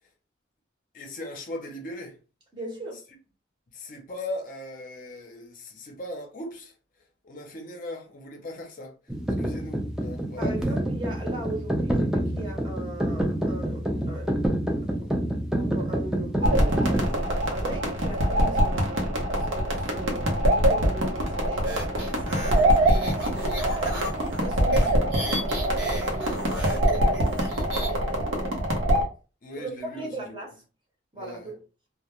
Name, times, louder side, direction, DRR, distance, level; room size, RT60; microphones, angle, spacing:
voice 1, 0.9-2.2 3.7-10.8 22.4-22.7 29.4-30.4 31.1-31.5, left 1 dB, 45° left, 0.6 m, -39 dB
voice 2, 2.5-3.0 10.4-14.6 15.0-15.1 15.5-17.0 17.5-21.7 22.0-29.0 29.6-30.5 31.1-31.6, right 2 dB, 25° right, 0.7 m, -39 dB
sound 1, 9.1-17.1, right 1 dB, 5° right, 0.3 m, -27 dB
sound 2, 16.4-29.0, right 1 dB, 85° right, 0.8 m, -24 dB
sound 3, 21.6-27.9, right 1 dB, 70° right, 1.2 m, -36 dB
2.2 x 2.1 x 2.9 m
head